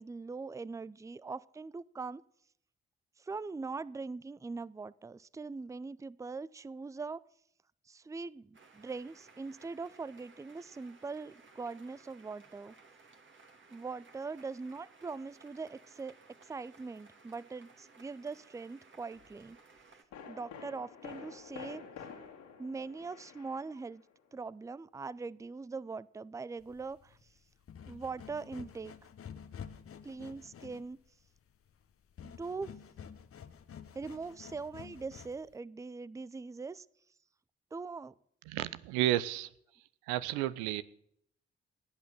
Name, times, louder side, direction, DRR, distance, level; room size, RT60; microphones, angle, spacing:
voice 1, 0.0-2.2 3.2-7.2 7.9-12.7 13.7-16.1 16.5-19.6 20.3-21.8 22.6-24.0 24.3-27.2 27.9-28.9 30.0-31.0 32.2-32.7 33.9-36.9 37.7-38.1, right 4 dB, 10° right, 21 dB, 0.5 m, -42 dB
sound 1, 8.5-20.0, right 4 dB, 40° right, 2.2 m, -60 dB
sound 2, 19.1-19.3 20.1-24.2 24.5-24.6, left 7 dB, 70° left, 2.6 m, -49 dB
sound 3, 26.6-35.6, left 7 dB, 45° left, 1.1 m, -50 dB
voice 2, 38.5-39.5 40.1-40.8, right 14 dB, 75° right, 17 dB, 0.6 m, -31 dB
18.5 x 8.6 x 6.6 m, 0.71 s
hypercardioid pair, 40°, 30 cm